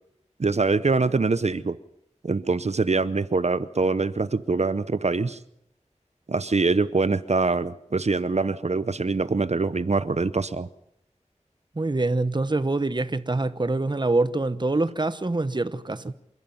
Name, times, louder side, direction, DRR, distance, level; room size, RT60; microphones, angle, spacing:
voice 1, 0.4-1.8 2.2-5.4 6.3-10.7, right 3 dB, 60° right, 0.8 m, -24 dB
voice 2, 11.7-16.1, right 2 dB, 35° right, 1.0 m, -25 dB
27.0 x 11.0 x 9.3 m
wide cardioid pair, 60°, 12 cm